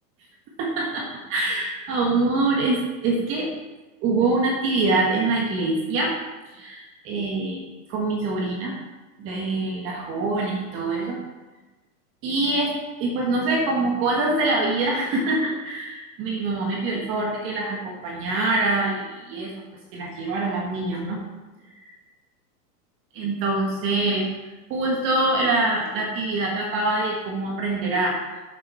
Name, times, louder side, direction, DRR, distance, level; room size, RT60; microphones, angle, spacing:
voice 1, 0.6-3.5 4.0-6.1 6.5-7.6 7.9-8.7 9.2-11.2 12.2-12.7 13.0-19.5 19.9-21.2 23.1-24.2 24.7-28.4, right 2 dB, 25° right, -1 dB, 1.4 m, -24 dB
11.0 x 7.1 x 4.4 m, 1.2 s
supercardioid pair, 165°, 50 cm